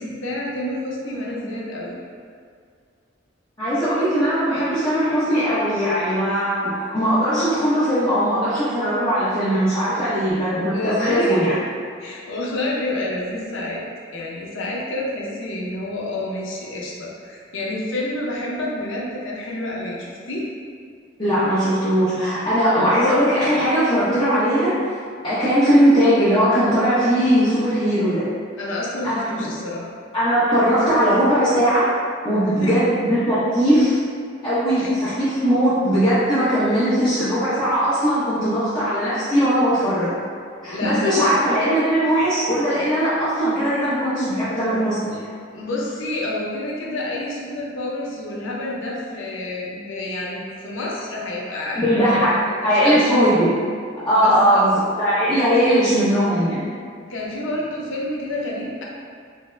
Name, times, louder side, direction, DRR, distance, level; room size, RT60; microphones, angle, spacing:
voice 1, 0.0-1.9 9.8-10.1 10.7-11.4 12.0-13.8 14.1-20.5 28.6-29.9 32.4-32.7 34.7-34.9 40.6-41.4 45.5-52.2 52.6-53.3 54.1-54.7 57.1-58.8, left 1 dB, 85° left, -4 dB, 0.6 m, -29 dB
voice 2, 3.6-11.5 21.2-24.7 25.2-28.2 29.0-29.5 30.1-31.9 32.2-34.0 34.4-40.1 40.6-45.2 51.7-52.3 52.6-53.5 54.1-56.7, equal, 25° left, -15 dB, 0.8 m, -19 dB
3.5 x 2.1 x 3.2 m, 2.1 s
head